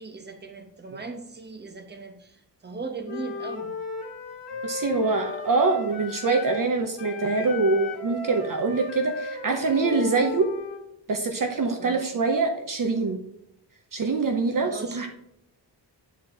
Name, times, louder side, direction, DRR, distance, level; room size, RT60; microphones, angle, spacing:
voice 1, 0.0-3.7 11.8-12.1 14.6-15.1, right 3 dB, 25° right, 5 dB, 1.0 m, -38 dB
Wind instrument woodwind instrument, 3.0-6.7 7.0-10.9, left 4 dB, 35° left, 2.3 m, -36 dB
voice 2, 4.6-10.5 11.1-13.2 13.9-15.1, right 3 dB, 50° right, 4 dB, 0.8 m, -24 dB
9.4 x 4.3 x 4.8 m, 0.79 s
wide cardioid pair, 155°, 43 cm